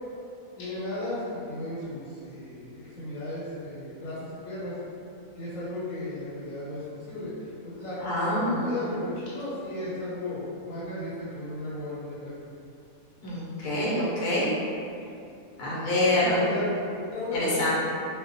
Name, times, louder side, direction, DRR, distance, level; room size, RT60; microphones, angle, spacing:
voice 1, 0.6-4.8 5.4-7.3 7.6-12.3 16.0-17.7, left 1 dB, 80° left, -10 dB, 1.0 m, -35 dB
voice 2, 8.0-8.7 13.2-14.5 15.6-16.5 17.3-17.7, left 1 dB, 55° left, -8 dB, 0.6 m, -26 dB
2.3 x 2.2 x 2.5 m, 2.5 s
omnidirectional pair, 1.4 m